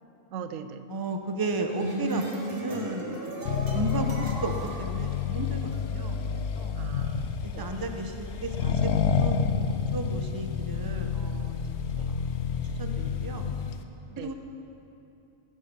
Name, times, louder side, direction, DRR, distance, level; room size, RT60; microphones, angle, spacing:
voice 1, 0.3-0.9 6.7-7.8 12.0-12.1 14.1-14.3, right 7 dB, 90° right, 10 dB, 1.0 m, -41 dB
voice 2, 0.9-3.2 3.7-4.5 4.8-6.2 6.6-6.7 7.4-8.9 9.2-11.6 11.9-12.1 12.8-13.5 14.2-14.3, right 2 dB, 20° right, 5 dB, 0.7 m, -34 dB
sound 1, 1.5-5.8, equal, 50° right, 1.6 m, -36 dB
Accelerating revving vroom, 3.5-13.8, left 6 dB, 65° left, 0.9 m, -29 dB
15.0 x 7.5 x 6.8 m, 2.7 s
omnidirectional pair, 1.3 m